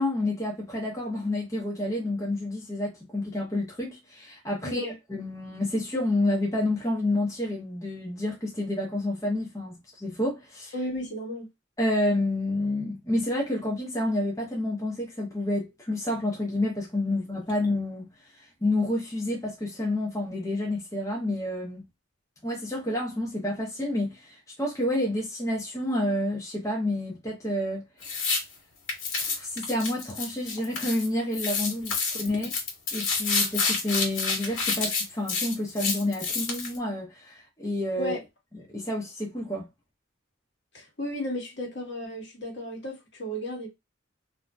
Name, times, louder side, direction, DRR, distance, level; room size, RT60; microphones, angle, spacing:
voice 1, 0.0-10.7 11.8-18.1 18.4-21.9 22.4-27.8 29.2-32.5 32.9-38.1 38.7-39.7, left 1 dB, 15° left, 0.6 m, -29 dB
voice 2, 4.6-4.9 10.7-11.5 32.3-32.4 38.0-38.2 40.7-43.7, left 1 dB, 60° left, 1.2 m, -34 dB
sound 1, 28.0-28.4 28.9-31.1 31.3-36.8, left 4 dB, 85° left, 1.1 m, -28 dB
2.6 x 2.1 x 3.2 m
head